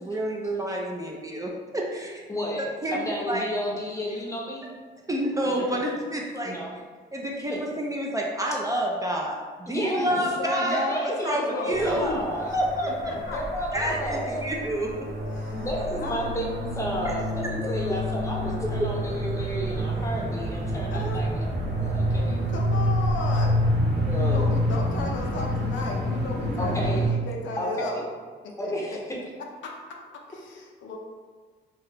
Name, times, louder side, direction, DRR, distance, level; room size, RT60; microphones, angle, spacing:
voice 1, 0.0-2.2 2.8-3.5 5.1-6.6 7.1-12.1 12.5-13.4 13.7-15.1 17.0-17.1 17.4-17.5, right 1 dB, 15° right, -1 dB, 0.4 m, -29 dB
voice 2, 2.3-4.7 5.5-5.8 6.4-6.7 9.7-10.2 10.6-12.5 13.2-14.5 15.5-21.5 21.8-22.4 23.9-24.4 26.6-27.0 27.6-28.0 28.6-29.0, equal, 15° left, -2 dB, 0.7 m, -31 dB
voice 3, 10.0-12.3 12.8-13.4 13.8-14.0 15.3-15.7 16.0-16.3 20.9-21.2 22.5-23.6 24.1-28.0 28.4-29.0 29.6-29.7 30.3-31.0, left 3 dB, 75° left, 0 dB, 0.5 m, -35 dB
sound 1, 11.7-27.1, equal, 60° right, 0.7 m, -28 dB
2.7 x 2.2 x 3.3 m, 1.5 s
cardioid pair, 90°, 20 cm